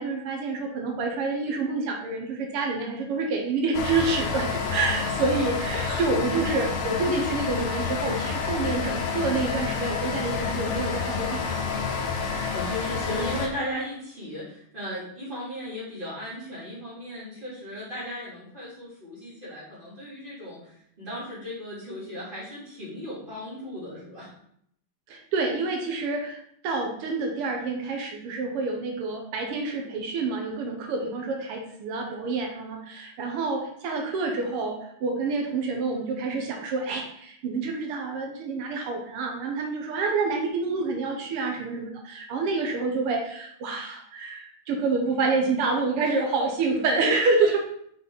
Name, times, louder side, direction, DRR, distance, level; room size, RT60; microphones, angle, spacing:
voice 1, 0.0-11.5 25.1-47.6, right 3 dB, 90° right, 2 dB, 1.9 m, -28 dB
sound 1, 3.7-13.5, left 5 dB, 75° left, 1.6 m, -29 dB
voice 2, 12.5-20.6 21.0-24.3 46.0-46.5 47.4-47.5, equal, 20° right, -8 dB, 3.1 m, -36 dB
5.5 x 5.4 x 3.9 m, 0.69 s
omnidirectional pair, 2.4 m